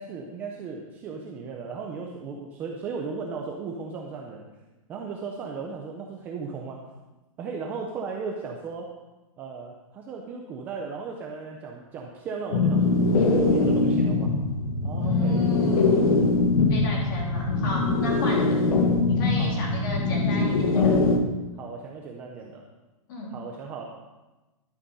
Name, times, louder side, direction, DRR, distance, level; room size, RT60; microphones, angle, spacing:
voice 1, 0.0-4.4 4.9-6.9 7.4-8.9 9.4-14.4 14.8-15.5 19.4-19.6 21.5-22.6 23.3-23.8, right 5 dB, 10° right, 0 dB, 0.4 m, -36 dB
sound 1, 12.5-21.2, left 3 dB, 75° left, 1.7 m, -22 dB
voice 2, 15.0-16.1 16.7-18.6 19.1-20.9 23.1-23.3, left 1 dB, 35° left, -2 dB, 3.3 m, -34 dB
11.5 x 9.0 x 5.5 m, 1.1 s
hypercardioid pair, 175°, 18 cm